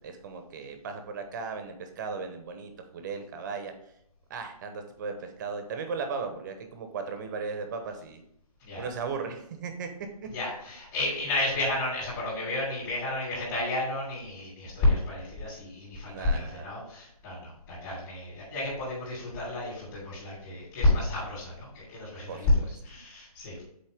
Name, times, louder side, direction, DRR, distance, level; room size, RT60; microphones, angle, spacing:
voice 1, 0.0-3.9 4.3-8.2 8.8-9.9 10.2-10.3 16.1-16.7 22.3-22.7, right 5 dB, 30° right, 6 dB, 0.9 m, -37 dB
voice 2, 10.3-23.7, left 2 dB, 25° left, -7 dB, 2.8 m, -30 dB
7.5 x 4.4 x 3.5 m, 0.76 s
hypercardioid pair, 155°, 20 cm